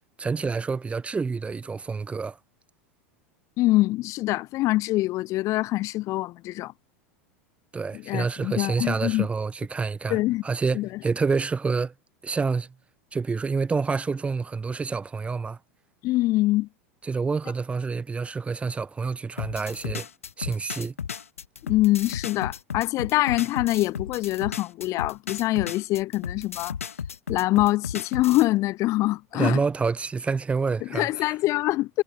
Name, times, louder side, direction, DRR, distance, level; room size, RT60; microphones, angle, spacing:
voice 1, 0.2-2.4 7.7-11.9 12.2-12.7 13.1-15.6 17.0-20.1 20.4-20.9 29.3-31.3, right 4 dB, 15° right, 0.9 m, -28 dB
voice 2, 3.6-6.7 7.9-9.3 10.1-10.4 10.7-10.9 16.0-16.7 21.6-26.8 27.3-29.6 30.8-32.0, left 18 dB, 45° left, 0.7 m, -24 dB
sound 1, 19.4-28.5, left 7 dB, 85° left, 2.1 m, -34 dB
hypercardioid pair, 90°, 7 cm